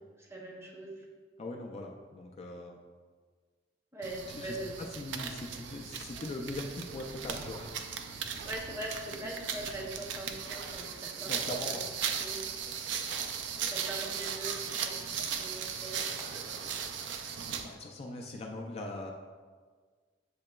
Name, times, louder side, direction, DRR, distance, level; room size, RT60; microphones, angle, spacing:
voice 1, 0.2-1.1 3.9-4.9 8.4-11.8 12.2-12.5 13.7-16.7, right 1 dB, 15° right, -2 dB, 0.6 m, -42 dB
voice 2, 1.4-2.8 4.3-4.6 5.0-7.7 11.2-11.8 17.6-19.1, left 2 dB, 35° left, 1 dB, 0.3 m, -40 dB
sound 1, 4.0-17.7, right 7 dB, 75° right, 0.4 m, -37 dB
7.3 x 2.9 x 2.2 m, 1.5 s
head